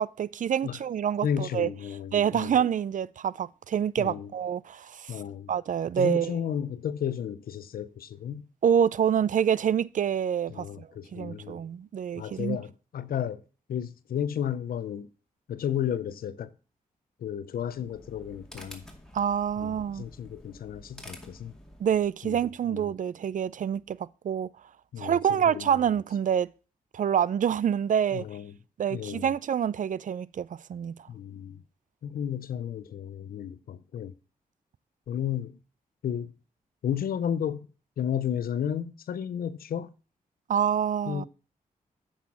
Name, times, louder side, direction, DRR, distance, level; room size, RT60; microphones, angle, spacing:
voice 1, 0.0-1.7 2.1-5.2 5.5-6.4 8.6-12.6 19.1-20.0 21.8-24.5 25.0-26.5 26.9-28.2 28.8-31.0 40.5-41.3, right 8 dB, 60° right, 0.4 m, -27 dB
voice 2, 1.2-2.5 4.0-4.3 5.1-5.5 6.0-8.5 10.5-11.6 12.1-13.4 13.7-15.1 15.5-16.5 17.2-18.8 19.6-21.6 22.2-22.4 22.7-22.9 24.9-25.8 28.1-28.5 28.9-29.3 31.1-31.6 32.0-34.1 35.1-35.6 36.0-36.3 36.8-37.7 38.0-39.9 41.1-41.3, left 9 dB, 80° left, 0.6 m, -33 dB
sound 1, 17.7-22.1, equal, 5° left, 2.3 m, -49 dB
8.6 x 5.7 x 5.9 m
cardioid pair, 60°, 15 cm